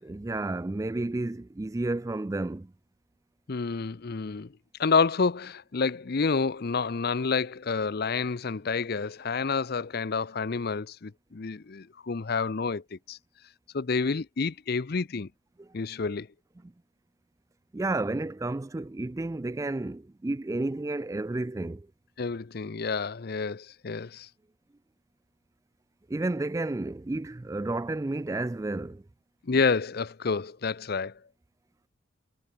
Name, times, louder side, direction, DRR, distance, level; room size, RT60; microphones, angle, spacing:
voice 1, 0.0-2.7 15.6-15.7 17.7-21.9 26.1-29.0, right 2 dB, 15° right, 0.3 m, -31 dB
voice 2, 3.5-4.5 4.8-13.2 13.7-15.3 15.7-16.3 22.2-24.3 29.4-31.1, left 4 dB, 50° left, 0.6 m, -29 dB
head